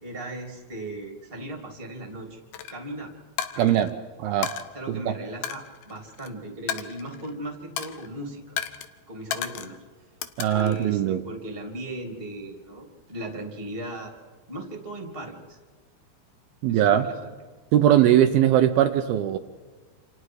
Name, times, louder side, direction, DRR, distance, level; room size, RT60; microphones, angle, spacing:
voice 1, 0.0-2.4 2.7-3.1 3.5-3.9 4.7-8.6 9.1-9.7 10.5-14.1 14.5-15.6 16.7-17.3, right 1 dB, 15° right, 2 dB, 3.1 m, -37 dB
Coin (dropping), 2.5-2.7 3.4-3.9 4.4-4.6 5.4-6.3 6.7-7.4 7.8-8.1 8.6-8.9 9.3-9.8 10.2-10.8, left 9 dB, 65° left, 2.3 m, -33 dB
voice 2, 3.6-3.9 4.2-4.5 5.1-5.2 10.4-11.2 16.6-17.1 17.7-19.4, right 11 dB, 75° right, 7 dB, 2.6 m, -20 dB
28.5 x 28.5 x 4.9 m, 1.4 s
omnidirectional pair, 4.6 m